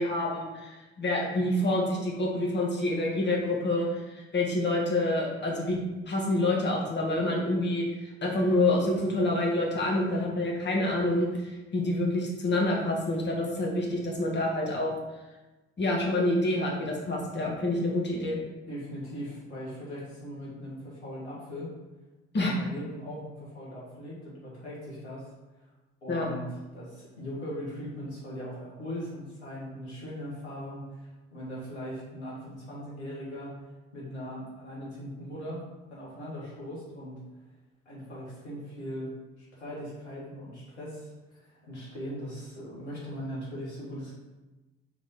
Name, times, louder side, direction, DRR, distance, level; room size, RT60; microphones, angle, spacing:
voice 1, 0.0-5.8 6.1-14.9 15.8-18.4 22.3-22.5 26.1-26.3, left 1 dB, 35° left, -2 dB, 1.6 m, -27 dB
voice 2, 18.7-21.7 22.4-25.3 25.6-25.7 26.0-33.5 33.9-35.6 35.9-37.2 37.9-44.1, equal, 85° left, -6 dB, 1.7 m, -39 dB
4.9 x 3.6 x 5.5 m, 1.1 s
figure-of-eight pair, 45°, 32 cm